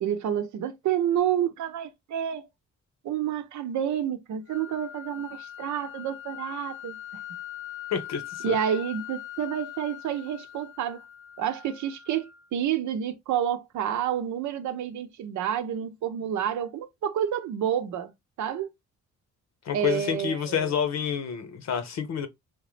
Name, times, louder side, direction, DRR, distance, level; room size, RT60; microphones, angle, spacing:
voice 1, 0.0-2.5 3.0-7.0 8.4-11.0 11.4-18.1 18.4-18.7 19.7-20.7, right 9 dB, 70° right, 0.7 m, -29 dB
sound 1, 4.5-12.5, left 12 dB, 40° left, 0.5 m, -42 dB
voice 2, 7.9-8.6 19.6-22.3, left 8 dB, 60° left, 0.9 m, -28 dB
3.7 x 2.9 x 3.1 m
cardioid pair, 90°, 30 cm